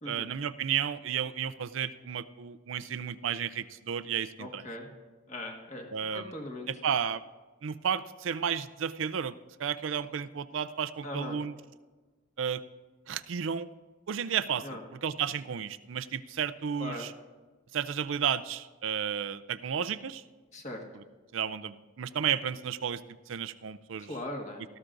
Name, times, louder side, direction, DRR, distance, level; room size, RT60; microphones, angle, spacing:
voice 1, 0.1-4.6 5.9-6.3 6.7-7.2 7.6-9.3 9.6-11.5 12.4-12.6 13.1-13.7 14.1-17.1 17.7-20.2 21.3-23.0 23.3-24.1, right 8 dB, 65° right, 13 dB, 0.4 m, -32 dB
voice 2, 4.4-4.9 5.3-5.9 6.1-6.7 11.0-11.4 14.6-14.8 16.8-17.1 20.5-20.8 24.0-24.6, left 1 dB, 35° left, 1 dB, 1.6 m, -39 dB
17.5 x 13.5 x 2.6 m, 1.3 s
head